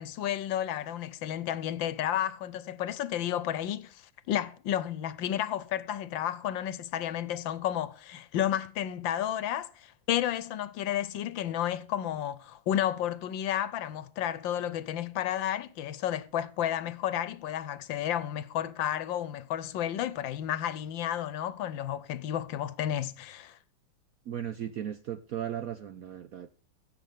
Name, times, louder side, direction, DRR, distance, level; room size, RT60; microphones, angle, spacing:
voice 1, 0.0-23.6, left 11 dB, 75° left, 1.4 m, -32 dB
voice 2, 24.3-26.5, right 10 dB, 70° right, 0.8 m, -36 dB
16.0 x 8.0 x 3.5 m
omnidirectional pair, 2.2 m